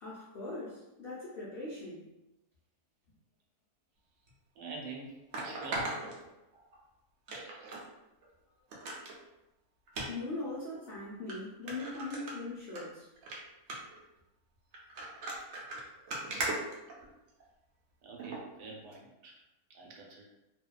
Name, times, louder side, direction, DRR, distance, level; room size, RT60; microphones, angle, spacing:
voice 1, 0.0-2.0 10.1-13.1, left 2 dB, 80° left, -8 dB, 0.5 m, -40 dB
sound 1, 4.3-4.4 5.3-6.8 7.3-7.8 8.2-8.3 8.7-9.2 9.9-10.1 10.8-10.9 11.3-11.4 11.7-12.8 13.2-13.4 13.7-14.0 14.7-17.4 18.2-18.4 18.9-19.0, right 2 dB, 65° right, 0.9 m, -38 dB
voice 2, 4.5-5.2 5.4-6.0 18.0-19.4 19.7-20.3, right 3 dB, 85° right, -2 dB, 1.2 m, -46 dB
2.7 x 2.2 x 2.2 m, 0.94 s
omnidirectional pair, 1.8 m